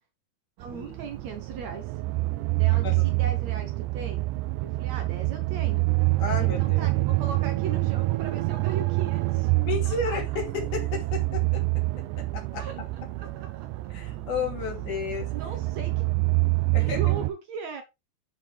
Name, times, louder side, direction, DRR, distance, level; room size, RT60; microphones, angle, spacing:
voice 1, 0.6-1.9 2.5-4.2 4.6-5.8 6.2-9.5 9.9-10.2 12.6-12.8 13.2-13.7 14.6-14.7 15.3-16.0 16.8-17.8, right 5 dB, 65° right, 2.1 m, -38 dB
sound 1, 0.6-17.3, right 21 dB, 80° right, 1.9 m, -26 dB
voice 2, 6.2-6.9 9.6-11.6 12.2-12.6 13.9-15.3 16.7-17.0, left 5 dB, 65° left, 3.9 m, -32 dB
9.2 x 5.3 x 3.5 m
omnidirectional pair, 3.9 m